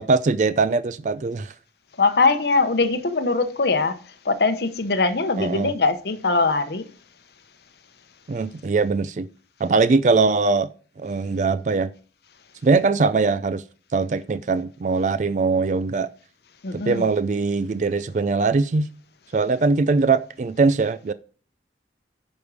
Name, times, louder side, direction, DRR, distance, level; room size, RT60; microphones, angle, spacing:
voice 1, 0.0-1.5 5.4-5.7 8.3-9.3 9.6-10.7 11.0-11.9 12.6-13.6 13.9-16.1 16.7-18.9 19.3-21.1, right 4 dB, 45° right, 0.4 m, -21 dB
voice 2, 2.0-4.0 4.2-6.9 16.6-17.1, left 3 dB, 70° left, 0.8 m, -21 dB
9.6 x 5.2 x 4.8 m
head